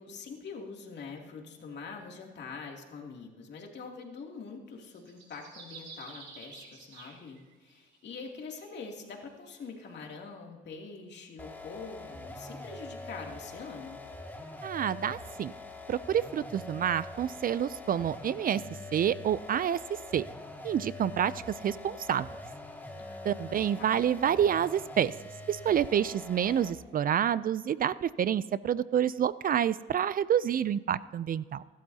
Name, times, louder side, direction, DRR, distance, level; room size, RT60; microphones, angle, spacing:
voice 1, 0.0-14.0 23.0-23.9, left 4 dB, 60° left, 0 dB, 2.7 m, -44 dB
sound 1, 4.8-7.8 8.4-9.9, right 4 dB, 65° right, 3.5 m, -50 dB
sound 2, 11.4-26.9, left 2 dB, 10° left, 2.1 m, -44 dB
voice 2, 14.6-15.5 15.9-18.6 18.9-20.2 20.6-21.3 21.6-22.3 23.2-25.1 25.5-31.6, right 9 dB, 45° right, 18 dB, 0.4 m, -28 dB
24.0 x 12.5 x 2.8 m, 1.5 s
cardioid pair, 90°, 20 cm